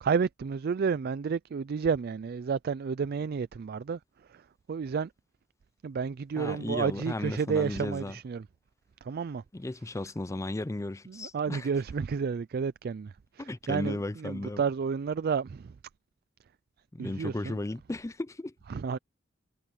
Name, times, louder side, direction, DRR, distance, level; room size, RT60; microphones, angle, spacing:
voice 1, 0.0-4.0 4.7-5.1 5.8-8.4 9.1-9.4 11.1-14.0 14.2-15.7 17.0-17.6 18.7-19.0, right 6 dB, 50° right, 0.4 m, -31 dB
voice 2, 6.4-8.2 9.5-11.7 13.4-14.6 16.9-18.5, left 2 dB, 15° left, 0.5 m, -35 dB
head